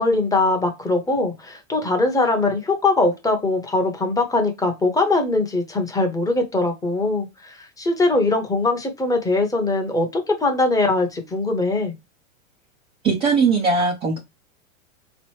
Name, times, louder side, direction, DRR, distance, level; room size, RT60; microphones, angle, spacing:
voice 1, 0.0-11.9, left 2 dB, 10° left, 0.8 m, -21 dB
voice 2, 13.0-14.2, right 4 dB, 15° right, 0.4 m, -19 dB
3.8 x 3.1 x 3.0 m
hypercardioid pair, 130°, 41 cm